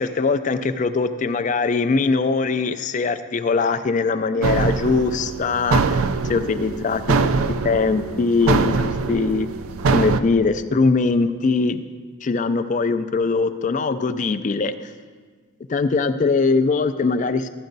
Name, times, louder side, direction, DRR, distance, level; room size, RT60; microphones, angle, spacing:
voice 1, 0.0-7.3 7.6-9.5 9.9-11.8 12.2-14.9 15.7-17.5, left 4 dB, 35° left, 11 dB, 0.4 m, -21 dB
sound 1, 4.4-10.2, right 4 dB, 85° right, 0.4 m, -23 dB
13.0 x 9.0 x 4.0 m, 1.5 s
head